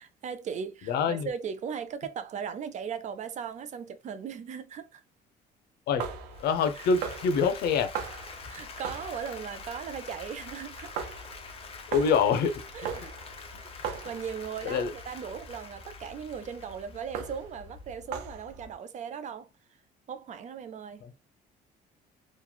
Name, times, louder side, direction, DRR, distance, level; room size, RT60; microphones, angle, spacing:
voice 1, 0.0-5.0 6.8-6.9 8.5-11.1 11.6-11.7 12.7-13.3 13.8-19.5 20.1-21.1, right 7 dB, 45° right, 0.4 m, -38 dB
voice 2, 0.8-1.3 5.9-6.0 6.4-7.9 11.9-12.5 13.5-13.6 14.6-14.9 21.0-21.1, left 6 dB, 75° left, 0.6 m, -25 dB
sound 1, 5.9-18.7, right 6 dB, 85° right, 0.6 m, -41 dB
Applause, 6.3-17.7, left 5 dB, 35° left, 0.7 m, -46 dB
3.0 x 2.2 x 2.2 m
cardioid pair, 110°, 17 cm